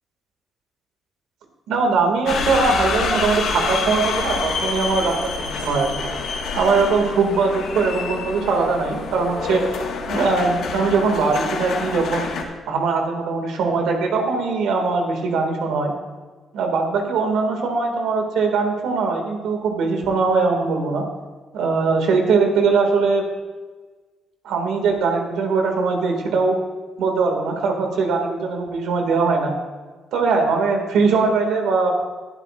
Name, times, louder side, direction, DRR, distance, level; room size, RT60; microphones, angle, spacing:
voice 1, 1.7-6.1 6.6-9.6 10.1-12.3 12.7-15.9 16.5-21.0 21.5-23.2 24.4-26.6 27.0-29.5 30.1-31.9, right 4 dB, 85° right, 3 dB, 2.1 m, -21 dB
sound 1, 2.3-12.4, left 4 dB, 75° left, 1.6 m, -27 dB
20.0 x 8.1 x 2.5 m, 1.4 s
cardioid pair, 90°, 0 cm